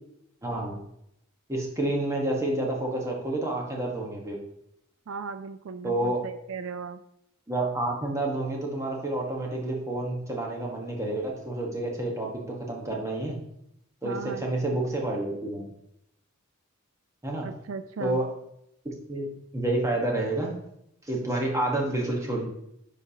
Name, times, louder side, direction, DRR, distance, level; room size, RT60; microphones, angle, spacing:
voice 1, 0.4-0.8 1.5-4.4 5.8-6.2 7.5-13.4 14.0-15.7 17.2-17.5 18.0-18.2 19.1-20.5 21.0-22.4, right 1 dB, 15° right, -1 dB, 1.3 m, -29 dB
voice 2, 5.1-7.0 14.0-14.4 17.4-18.2, right 5 dB, 70° right, 10 dB, 0.4 m, -37 dB
9.2 x 5.3 x 2.8 m, 0.78 s
head